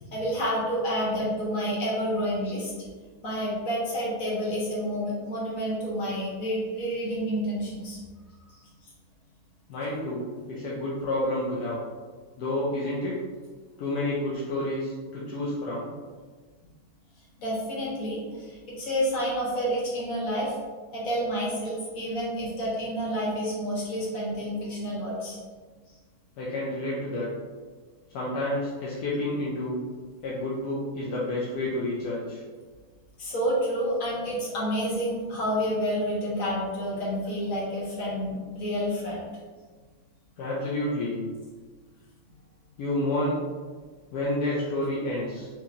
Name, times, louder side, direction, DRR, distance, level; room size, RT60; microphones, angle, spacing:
voice 1, 0.1-2.7 3.2-8.0 17.4-20.5 20.9-25.4 33.2-39.2, equal, 65° left, -6 dB, 1.5 m, -29 dB
voice 2, 9.7-11.8 12.4-13.2 13.8-15.9 25.9-26.0 26.4-27.3 28.1-29.8 30.2-32.4 36.9-37.0 40.4-41.2 42.8-43.4 44.1-45.5, left 1 dB, 80° left, -6 dB, 1.2 m, -30 dB
4.4 x 2.8 x 2.5 m, 1.4 s
omnidirectional pair, 1.6 m